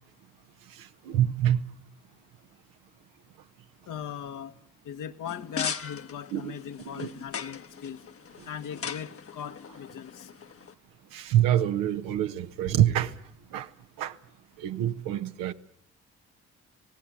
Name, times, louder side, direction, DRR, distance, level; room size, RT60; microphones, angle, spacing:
voice 1, 0.8-1.6 6.3-6.6 7.0-7.1 11.1-13.1 13.5-13.7 14.0-14.1 14.6-15.5, right 11 dB, 80° right, 1.1 m, -26 dB
voice 2, 3.9-4.5 4.8-8.0 8.4-10.3, left 9 dB, 65° left, 1.4 m, -39 dB
sound 1, 5.2-10.7, left 6 dB, 40° left, 1.1 m, -39 dB
26.5 x 18.0 x 8.6 m
hypercardioid pair, 45°, 34 cm